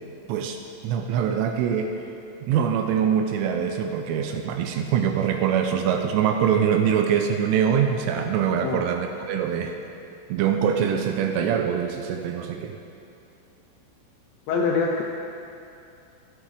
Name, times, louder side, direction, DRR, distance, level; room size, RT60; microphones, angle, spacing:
voice 1, 0.8-2.0 2.5-9.8 10.3-12.8, right 8 dB, 85° right, 5 dB, 3.0 m, -23 dB
voice 2, 14.5-15.0, left 4 dB, 80° left, 0 dB, 2.6 m, -24 dB
24.0 x 8.3 x 3.3 m, 2.7 s
omnidirectional pair, 5.9 m